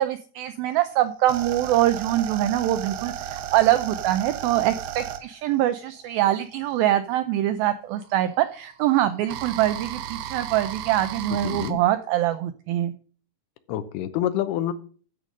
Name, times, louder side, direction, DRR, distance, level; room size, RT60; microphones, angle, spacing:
voice 1, 0.0-12.9, right 13 dB, 90° right, 10 dB, 2.1 m, -24 dB
sound 1, 0.7-6.9 7.9-11.7, right 10 dB, 75° right, 2.5 m, -34 dB
voice 2, 11.4-11.8 13.7-14.7, left 12 dB, 75° left, 12 dB, 2.8 m, -27 dB
13.0 x 5.2 x 6.2 m, 0.42 s
omnidirectional pair, 4.9 m